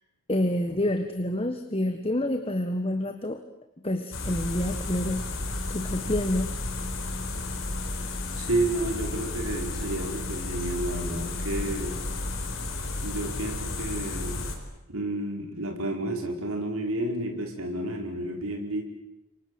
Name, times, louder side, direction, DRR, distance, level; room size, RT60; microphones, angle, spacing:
voice 1, 0.3-3.4 3.8-5.3 5.7-6.6, left 1 dB, 25° left, 7 dB, 1.5 m, -28 dB
sound 1, 4.1-14.6, left 2 dB, 65° left, 4.6 m, -32 dB
voice 2, 8.3-12.0 13.0-14.5 14.9-18.8, right 1 dB, 85° right, 3 dB, 4.9 m, -31 dB
28.0 x 24.0 x 7.9 m, 0.85 s
head